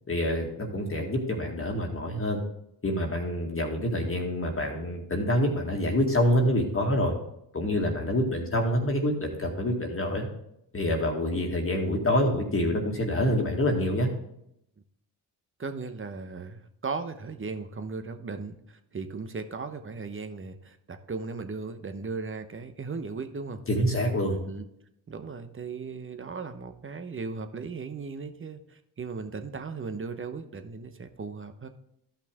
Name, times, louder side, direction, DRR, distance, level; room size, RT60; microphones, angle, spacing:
voice 1, 0.1-2.4 2.8-7.1 7.5-10.3 10.7-14.1 23.7-24.4, left 1 dB, 25° left, 1 dB, 1.9 m, -26 dB
voice 2, 15.6-23.6 24.5-24.6 25.1-31.7, right 4 dB, 25° right, 8 dB, 1.0 m, -37 dB
12.5 x 5.7 x 3.6 m, 0.77 s
supercardioid pair, 60°, 47 cm